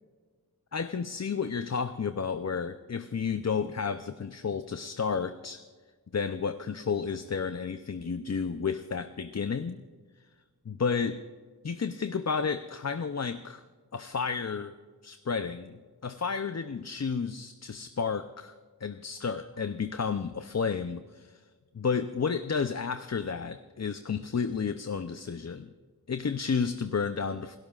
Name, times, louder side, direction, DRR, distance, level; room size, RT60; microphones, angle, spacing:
voice 1, 0.7-5.6 6.1-9.8 10.7-11.2 11.6-13.6 13.9-14.7 15.0-15.7 16.0-18.5 18.8-21.4 21.7-25.7 26.1-27.6, left 5 dB, 45° left, 9 dB, 0.6 m, -31 dB
28.5 x 12.5 x 2.4 m, 1.5 s
wide cardioid pair, 55°, 38 cm